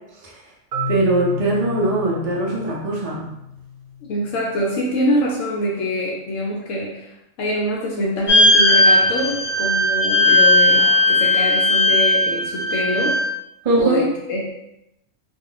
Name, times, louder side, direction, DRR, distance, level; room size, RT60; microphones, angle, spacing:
Marimba xylophone, 0.7-4.6, left 3 dB, 80° right, 1.0 m, -31 dB
voice 1, 0.9-3.3 13.6-14.1, right 2 dB, 50° right, -4 dB, 0.4 m, -21 dB
voice 2, 4.0-13.2 13.8-14.5, equal, 70° left, -3 dB, 0.9 m, -24 dB
sound 1, 8.3-13.3, left 2 dB, 20° left, 0.7 m, -16 dB
2.4 x 2.3 x 3.7 m, 0.85 s
omnidirectional pair, 1.4 m